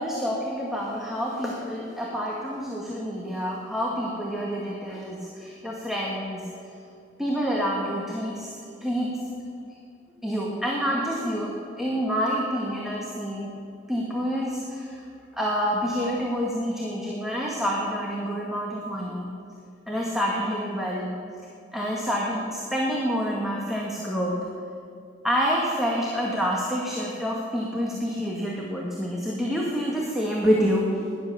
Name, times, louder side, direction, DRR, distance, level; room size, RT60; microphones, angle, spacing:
voice 1, 0.0-6.5 7.2-9.3 10.2-13.5 13.9-15.1 15.3-19.4 19.9-21.1 21.7-24.4 25.2-31.0, equal, ahead, -4 dB, 1.9 m, -28 dB
18.0 x 11.5 x 7.0 m, 2.4 s
head